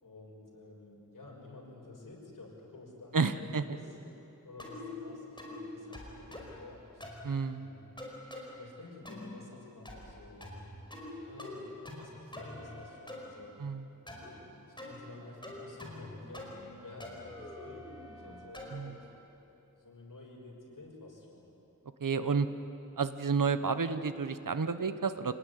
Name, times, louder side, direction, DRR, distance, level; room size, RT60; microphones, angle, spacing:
voice 1, 0.0-4.0 4.4-7.1 7.5-8.0 8.5-10.5 11.2-13.6 14.2-16.5 16.8-17.9 18.2-19.0 19.5-21.5, left 2 dB, 80° left, -3 dB, 6.3 m, -51 dB
voice 2, 3.1-3.6 7.2-7.7 13.6-13.8 18.7-18.9 22.0-22.5 23.0-25.3, right 5 dB, 80° right, 11 dB, 1.1 m, -30 dB
sound 1, 4.6-5.0 5.4-5.6 5.9-6.6 7.0-7.3 8.0-8.5 9.1-9.4 9.9-10.2 10.4-11.1 11.4-12.0 12.3-13.2 14.1-14.3 14.8-15.0 15.4-16.1 16.3-16.7 17.0-18.8, left 1 dB, 15° left, 5.0 m, -45 dB
27.5 x 19.0 x 9.8 m, 2.9 s
wide cardioid pair, 70°, 32 cm